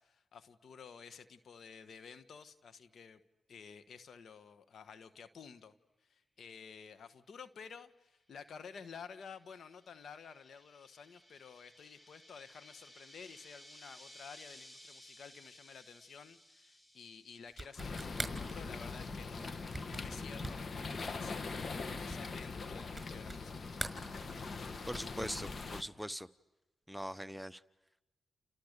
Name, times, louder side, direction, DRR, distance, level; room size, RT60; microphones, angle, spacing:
voice 1, 0.0-3.2 3.5-5.7 6.0-23.7, left 6 dB, 70° left, 11 dB, 1.4 m, -52 dB
sound 1, 9.2-18.6, equal, 25° left, 4.6 m, -59 dB
sound 2, 17.5-23.5 23.7-24.7, right 2 dB, 20° right, 5.9 m, -44 dB
sound 3, 17.8-25.8, left 4 dB, 55° left, 1.8 m, -42 dB
voice 2, 24.9-26.3 26.9-27.6, equal, 5° right, 13 dB, 1.0 m, -41 dB
30.0 x 29.5 x 6.8 m, 1.0 s
supercardioid pair, 40°, 0 cm